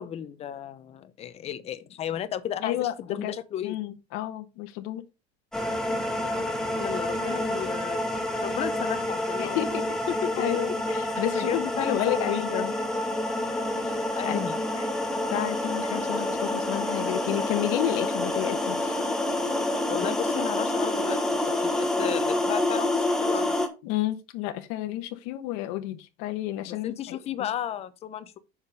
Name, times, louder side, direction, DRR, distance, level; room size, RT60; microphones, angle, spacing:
voice 1, 0.0-3.8 6.8-9.6 10.1-10.4 11.3-12.8 14.1-14.9 15.9-16.0 19.9-21.2 21.6-23.6 26.7-28.4, left 10 dB, 30° left, 0.8 m, -34 dB
voice 2, 2.6-3.3 3.6-5.0 9.4-10.0 10.4-12.7 13.8-14.0 14.2-14.4 15.3-18.9 23.8-27.2, left 14 dB, 75° left, 1.2 m, -31 dB
sound 1, 5.5-23.7, left 1 dB, 5° left, 1.2 m, -28 dB
7.2 x 5.1 x 5.3 m
cardioid pair, 170°, 20 cm